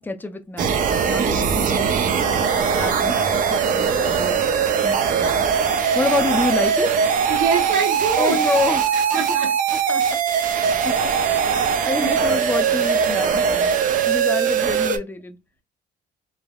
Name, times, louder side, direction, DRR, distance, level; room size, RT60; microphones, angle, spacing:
voice 1, 0.0-2.1 2.7-4.4 4.8-5.4 5.9-6.9 8.2-9.4 9.7-10.1 10.4-10.5 10.8-11.6 11.8-13.7 14.1-15.4, left 3 dB, 10° left, 0.5 m, -28 dB
sound 1, 0.6-15.0, right 7 dB, 50° right, 0.5 m, -20 dB
voice 2, 7.3-8.4 9.1-9.5 12.0-12.3, right 5 dB, 85° right, 1.0 m, -24 dB
3.4 x 2.1 x 2.2 m
cardioid pair, 110°, 17 cm